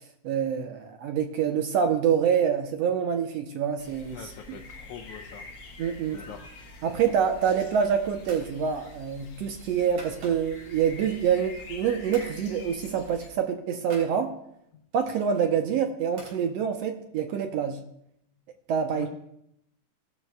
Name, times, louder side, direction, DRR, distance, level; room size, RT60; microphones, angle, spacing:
voice 1, 0.2-4.6 5.8-6.3 6.8-14.4 14.9-17.8 18.7-19.1, right 7 dB, 75° right, 5 dB, 1.6 m, -26 dB
sound 1, 3.8-13.3, left 2 dB, 55° left, 1.3 m, -46 dB
voice 2, 4.1-5.5 6.1-6.5 18.9-19.1, left 8 dB, 75° left, 4 dB, 2.0 m, -42 dB
sound 2, 8.2-8.5 8.9-10.7 11.2-11.8 12.1-12.3 12.7-12.8 13.1-14.1 14.9-16.4, right 2 dB, 50° right, 4.3 m, -49 dB
16.5 x 12.0 x 2.2 m, 0.76 s
omnidirectional pair, 3.5 m